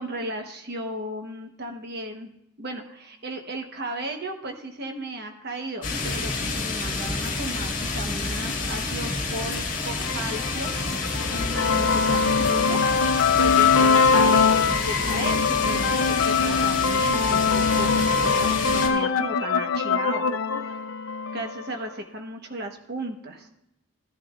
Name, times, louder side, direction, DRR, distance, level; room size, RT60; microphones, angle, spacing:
voice 1, 0.0-2.3 2.6-10.7 11.3-12.8 13.4-20.3 21.3-23.5, right 1 dB, 50° right, 4 dB, 1.1 m, -35 dB
sound 1, 5.8-18.9, left 3 dB, 40° left, 2.1 m, -29 dB
sound 2, 10.0-21.8, left 5 dB, 75° left, 0.6 m, -22 dB
sound 3, 10.6-14.0, left 1 dB, 5° right, 1.1 m, -40 dB
16.5 x 11.0 x 2.5 m, 0.81 s
head